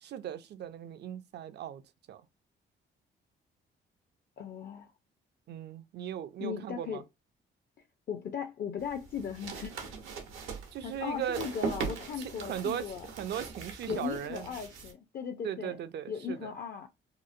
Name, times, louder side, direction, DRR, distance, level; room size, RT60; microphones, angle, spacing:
voice 1, 0.0-1.8 2.1-2.2 5.5-7.0 10.7-11.5 12.2-14.5 15.4-16.6, right 10 dB, 60° right, 0.4 m, -38 dB
voice 2, 4.4-4.9 6.4-7.0 8.1-9.8 10.8-13.1 13.8-15.8 16.1-16.9, left 7 dB, 50° left, 0.5 m, -37 dB
sound 1, 8.8-14.9, right 5 dB, 85° right, 0.8 m, -40 dB
2.9 x 2.0 x 2.4 m
cardioid pair, 90°, 20 cm